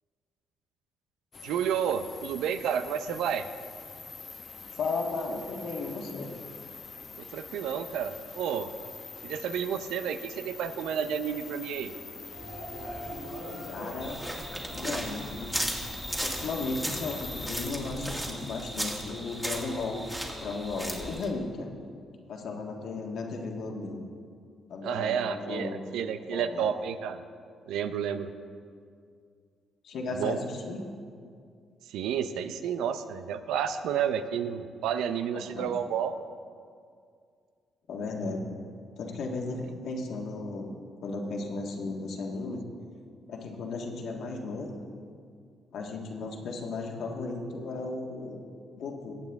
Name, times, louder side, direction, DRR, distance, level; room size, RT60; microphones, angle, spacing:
sound 1, 1.3-17.7, left 4 dB, 40° left, 0.8 m, -44 dB
voice 1, 1.4-3.5 7.2-8.7 9.2-11.9 24.8-27.2 27.7-28.3 30.1-30.4 31.9-36.2, right 8 dB, 85° right, 10 dB, 0.6 m, -31 dB
voice 2, 4.8-6.3 13.6-14.2 14.7-15.6 16.2-20.0 20.4-21.7 22.3-24.0 24.7-25.8 26.3-26.7 29.8-30.8 35.3-35.7 37.9-38.5 39.0-40.7 41.0-42.6 43.3-44.7 45.7-48.4 48.7-49.1, left 3 dB, 70° left, 1 dB, 1.5 m, -35 dB
sound 2, 12.3-18.4, right 1 dB, 35° right, 2.5 m, -43 dB
sound 3, 14.0-21.3, right 1 dB, 10° right, 1.8 m, -36 dB
18.5 x 8.3 x 3.5 m, 2.2 s
cardioid pair, 90°, 0 cm